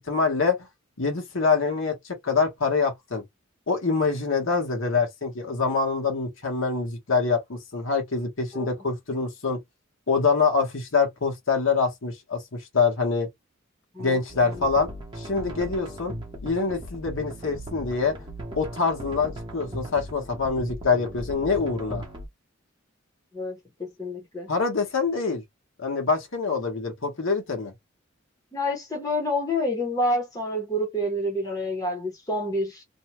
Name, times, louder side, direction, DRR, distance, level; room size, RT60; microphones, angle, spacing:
voice 1, 0.1-0.6 1.0-3.2 3.7-9.6 10.1-13.3 14.0-14.9 15.2-16.1 16.4-18.2 18.6-22.0 24.5-25.4 25.8-27.7, left 4 dB, 70° left, 1.1 m, -25 dB
sound 1, 14.3-22.3, equal, 20° right, 0.8 m, -38 dB
voice 2, 23.3-24.5 28.5-32.8, left 1 dB, 15° left, 0.8 m, -28 dB
2.6 x 2.2 x 2.9 m
head